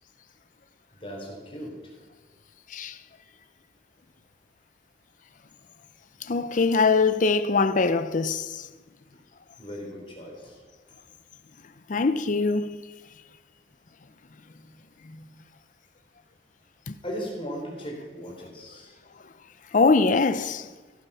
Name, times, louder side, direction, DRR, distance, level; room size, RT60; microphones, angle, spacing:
voice 1, 0.9-1.7 9.6-10.6 17.0-18.9, equal, 30° left, 3.4 m, -37 dB
voice 2, 6.2-8.7 11.9-12.7 15.1-15.2 16.9-17.0 19.7-20.7, left 4 dB, 45° left, 0.6 m, -23 dB
15.0 x 9.1 x 5.6 m
head